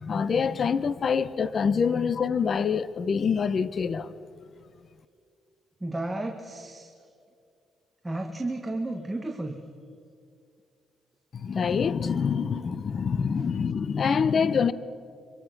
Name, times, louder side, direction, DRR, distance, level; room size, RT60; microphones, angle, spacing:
voice 1, 0.0-4.1 11.3-14.7, left 6 dB, 45° left, 0.8 m, -25 dB
voice 2, 5.8-6.9 8.0-9.6, right 2 dB, 15° right, 1.8 m, -33 dB
25.0 x 24.5 x 6.0 m
cardioid pair, 90°, 0 cm